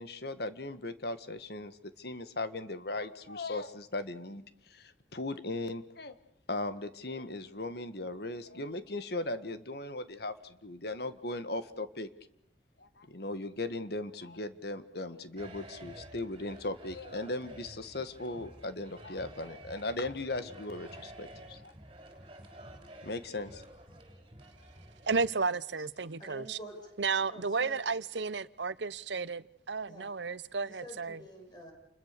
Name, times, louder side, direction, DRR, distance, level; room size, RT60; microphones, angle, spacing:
voice 1, 0.0-6.1 6.5-12.1 12.8-21.7 23.0-23.6, left 2 dB, 60° left, 1.7 m, -38 dB
sound 1, 15.4-25.3, right 1 dB, 25° right, 5.1 m, -51 dB
voice 2, 25.1-26.6 27.0-31.2, right 4 dB, 75° right, 0.9 m, -33 dB
voice 3, 26.2-26.9 27.3-28.0 29.9-30.1 30.6-31.7, equal, 25° left, 6.0 m, -48 dB
29.0 x 22.0 x 6.9 m
head